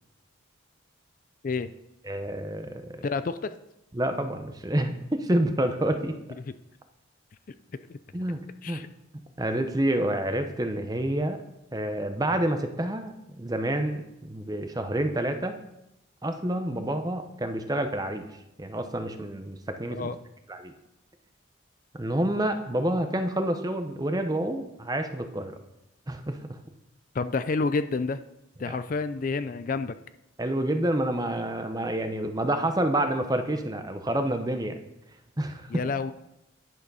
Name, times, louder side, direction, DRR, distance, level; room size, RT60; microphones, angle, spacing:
voice 1, 2.0-3.0 3.9-6.2 8.1-8.8 9.4-11.4 11.7-15.6 16.2-20.1 20.5-20.7 21.9-25.6 26.1-26.6 28.7-28.8 30.4-34.8 35.4-35.8, right 1 dB, 20° right, 7 dB, 0.7 m, -28 dB
voice 2, 3.0-3.5 7.9-8.0 8.6-8.9 20.0-20.2 27.1-28.2 28.6-29.9 35.7-36.1, left 4 dB, 40° left, 11 dB, 0.4 m, -29 dB
10.5 x 6.6 x 5.5 m, 0.87 s
head